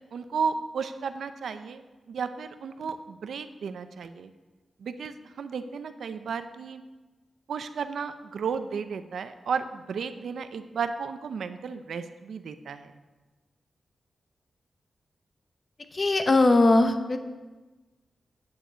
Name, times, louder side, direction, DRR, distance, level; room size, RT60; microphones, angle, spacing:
voice 1, 0.1-4.3 4.8-6.8 7.5-13.0, right 6 dB, 85° right, 10 dB, 0.6 m, -33 dB
voice 2, 15.9-17.2, left 2 dB, 30° left, 8 dB, 0.7 m, -20 dB
8.8 x 6.4 x 8.1 m, 1.2 s
wide cardioid pair, 175°, 0 cm